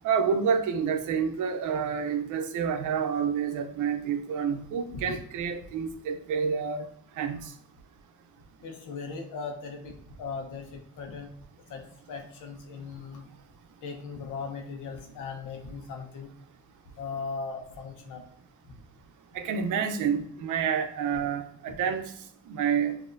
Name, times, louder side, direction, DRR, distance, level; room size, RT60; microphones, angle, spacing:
voice 1, 0.0-6.9 7.2-7.5 19.3-22.1 22.5-23.0, right 7 dB, 80° right, 7 dB, 0.7 m, -28 dB
voice 2, 8.6-11.3 11.7-13.3 13.8-16.3 17.0-18.2 18.7-18.8 21.7-21.8, left 5 dB, 85° left, 2 dB, 1.0 m, -38 dB
7.2 x 2.8 x 2.6 m, 0.64 s
cardioid pair, 90°, 30 cm